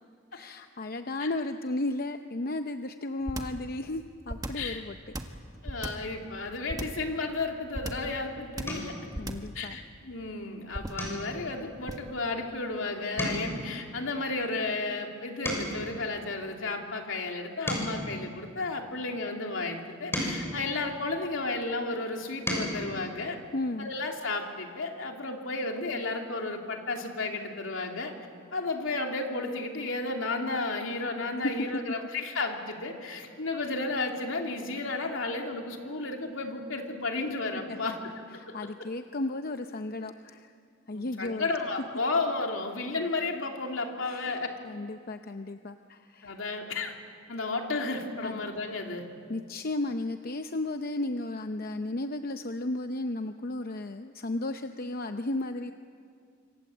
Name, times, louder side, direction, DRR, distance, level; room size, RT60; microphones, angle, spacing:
voice 1, 0.3-5.0 9.1-9.8 23.5-23.9 31.7-31.8 37.7-37.8 38.4-40.5 40.9-41.5 44.0-44.4 44.6-46.4 48.2-48.4 49.3-55.7, left 2 dB, 50° left, 7 dB, 0.7 m, -34 dB
sound 1, 3.3-3.6 4.3-4.7 5.1-6.1 6.7-7.1 7.7-8.1 8.6-8.9 9.1-9.6 10.7-11.1 11.9-12.2, right 1 dB, 20° right, 1.6 m, -36 dB
voice 2, 5.6-8.9 9.5-23.4 23.8-28.1 28.5-38.0 38.3-38.5 40.9-44.5 46.2-46.9 47.3-49.0, left 3 dB, 75° left, 2 dB, 3.1 m, -33 dB
sound 2, 8.6-9.0 9.5-9.9 10.2-10.4 10.9-12.8 13.0-16.0 16.6-19.1 19.7-21.6 22.1-22.8 24.2-24.3 24.6-24.8, equal, 10° left, 6.7 m, -37 dB
26.5 x 25.5 x 7.9 m, 2.3 s
head